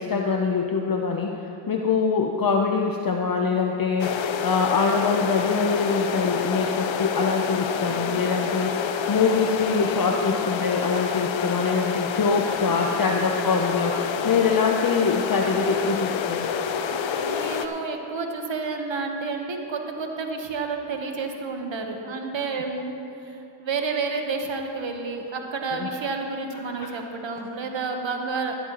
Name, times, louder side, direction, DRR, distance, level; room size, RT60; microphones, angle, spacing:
voice 1, 0.0-14.0 14.2-16.5 25.7-25.9 26.8-26.9, left 5 dB, 50° left, 2 dB, 0.8 m, -24 dB
sound 1, 4.0-17.7, left 6 dB, 90° left, 0.6 m, -27 dB
voice 2, 17.0-22.9 23.2-28.5, right 4 dB, 80° right, 3 dB, 1.3 m, -30 dB
15.0 x 12.5 x 3.0 m, 2.8 s
cardioid pair, 50°, 45 cm